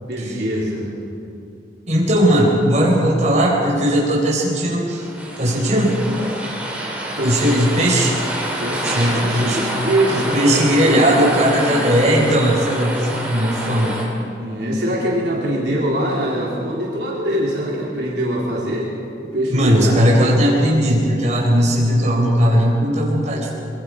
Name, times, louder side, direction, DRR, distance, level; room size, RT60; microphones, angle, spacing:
voice 1, 0.0-0.9 7.2-7.5 8.6-11.1 11.4-12.1 14.4-18.9 19.3-20.1, right 1 dB, 65° right, -4 dB, 3.9 m, -23 dB
voice 2, 1.9-5.1 5.4-5.9 7.2-8.1 8.8-9.6 10.1-14.0 19.5-23.5, equal, 40° right, -2 dB, 4.5 m, -17 dB
sound 1, 4.9-14.0, right 1 dB, 10° right, 3.6 m, -27 dB
25.5 x 22.5 x 4.9 m, 2.6 s
head